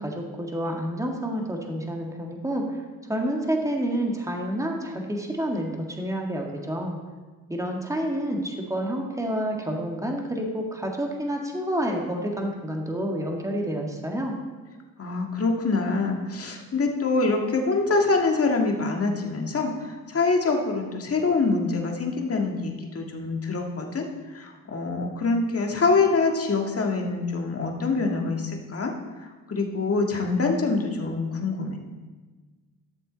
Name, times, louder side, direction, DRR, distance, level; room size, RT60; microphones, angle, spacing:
voice 1, 0.0-2.8 3.1-7.0 7.5-14.4, equal, 10° right, 1 dB, 1.9 m, -29 dB
voice 2, 15.0-19.7 20.1-24.1 24.3-28.9 29.5-31.8, left 3 dB, 40° left, 2 dB, 1.8 m, -25 dB
13.0 x 6.7 x 4.0 m, 1.3 s
cardioid pair, 65°, 37 cm